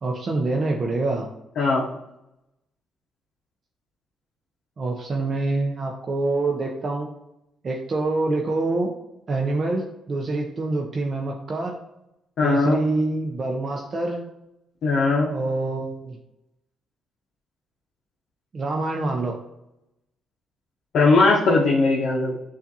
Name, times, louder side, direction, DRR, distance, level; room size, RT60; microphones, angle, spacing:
voice 1, 0.0-1.3 4.8-7.1 7.6-8.9 9.3-11.8 12.4-14.2 15.3-16.2 18.5-19.4, right 2 dB, 40° right, 1 dB, 0.5 m, -26 dB
voice 2, 1.6-1.9 12.4-12.8 14.8-15.3 20.9-22.3, left 3 dB, 65° left, -2 dB, 0.6 m, -19 dB
6.9 x 2.4 x 2.7 m, 0.88 s
cardioid pair, 90°, 0 cm